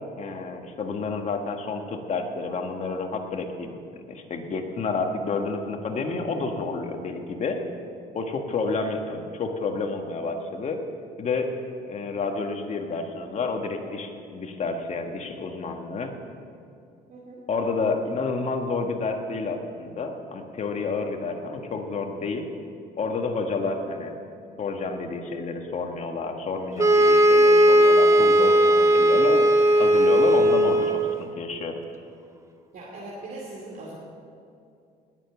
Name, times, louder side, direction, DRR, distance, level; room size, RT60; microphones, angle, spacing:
voice 1, 0.2-3.8 4.1-7.6 8.1-10.8 11.2-11.5 11.9-16.1 17.5-22.5 23.0-24.1 24.6-31.8, left 4 dB, 45° left, 4 dB, 1.6 m, -30 dB
voice 2, 17.1-17.4 32.7-33.9, right 2 dB, 55° right, -4 dB, 2.6 m, -40 dB
sound 1, 26.8-31.2, right 1 dB, 15° right, 0.9 m, -17 dB
19.5 x 7.0 x 7.0 m, 2.4 s
cardioid pair, 110°, 17 cm